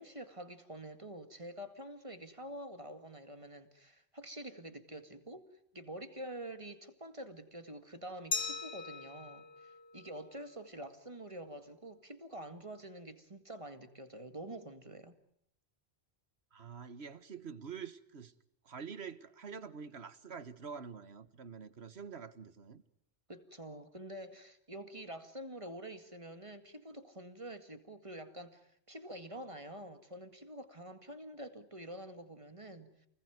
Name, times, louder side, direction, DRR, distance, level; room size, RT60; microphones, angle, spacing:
voice 1, 0.0-5.5 5.7-15.2 23.3-32.9, right 1 dB, 30° right, 2.2 m, -47 dB
Glass, 8.3-11.0, left 4 dB, 65° left, 1.7 m, -41 dB
voice 2, 16.5-18.3 18.7-22.8, right 6 dB, 80° right, 1.7 m, -46 dB
29.0 x 21.0 x 9.5 m
omnidirectional pair, 1.1 m